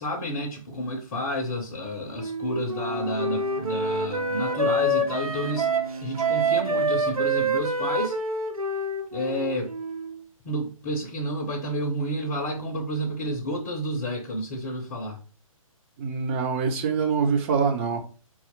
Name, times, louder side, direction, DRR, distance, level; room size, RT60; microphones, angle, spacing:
voice 1, 0.0-5.7 6.0-8.1 9.1-9.8 10.4-15.2, equal, 25° left, 0.5 m, -30 dB
Wind instrument woodwind instrument, 2.2-10.2, right 2 dB, 90° right, 0.5 m, -27 dB
Brass instrument, 2.8-7.1, right 4 dB, 45° right, 0.8 m, -37 dB
voice 2, 16.0-18.0, right 5 dB, 20° right, 0.5 m, -24 dB
4.1 x 2.3 x 2.8 m
figure-of-eight pair, 135°, 18 cm